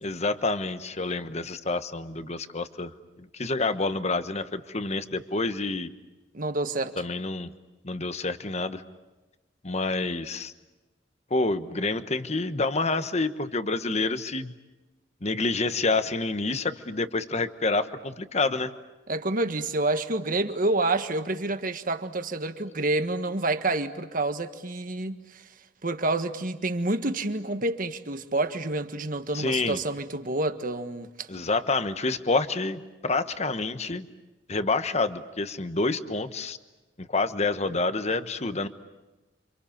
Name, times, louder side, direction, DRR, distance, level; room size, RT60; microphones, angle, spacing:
voice 1, 0.0-2.9 3.2-5.9 7.0-7.5 7.8-8.8 9.6-10.5 11.3-14.5 15.2-18.7 29.3-29.8 31.3-34.1 34.5-36.6 37.0-38.7, left 3 dB, 35° left, 1.2 m, -28 dB
voice 2, 6.3-6.9 19.1-25.4 25.8-31.3, right 2 dB, 50° right, 1.6 m, -28 dB
29.5 x 26.5 x 7.2 m
head